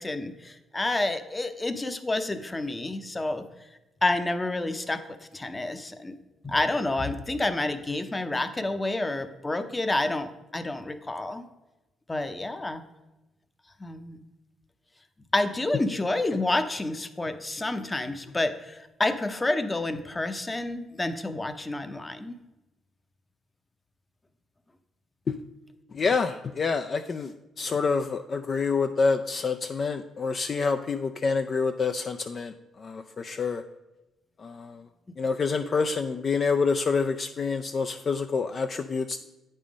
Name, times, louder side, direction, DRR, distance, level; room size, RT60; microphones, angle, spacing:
voice 1, 0.0-3.4 4.0-6.2 6.4-11.5 12.1-12.8 13.8-14.2 15.3-22.4, left 2 dB, 20° left, 10 dB, 0.7 m, -29 dB
voice 2, 25.9-33.6 34.4-34.9 35.2-39.2, left 4 dB, 45° left, 7 dB, 0.4 m, -27 dB
8.4 x 5.5 x 5.0 m, 1.0 s
cardioid pair, 90°, 0 cm